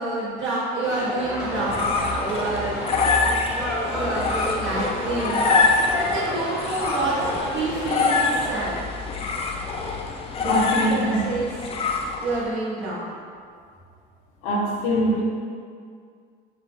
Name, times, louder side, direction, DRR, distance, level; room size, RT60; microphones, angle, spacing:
voice 1, 0.0-2.9 3.9-5.5 5.9-7.2 7.5-8.8 10.4-11.7 12.0-13.2, right 2 dB, 65° right, -9 dB, 1.0 m, -28 dB
sound 1, 0.8-8.5, equal, 5° right, 0.7 m, -31 dB
sound 2, 1.3-12.5, left 4 dB, 30° left, 0.4 m, -25 dB
voice 2, 10.4-11.3 14.4-15.2, right 1 dB, 75° left, -2 dB, 0.8 m, -23 dB
4.4 x 2.2 x 4.2 m, 2.2 s
cardioid pair, 130°, 21 cm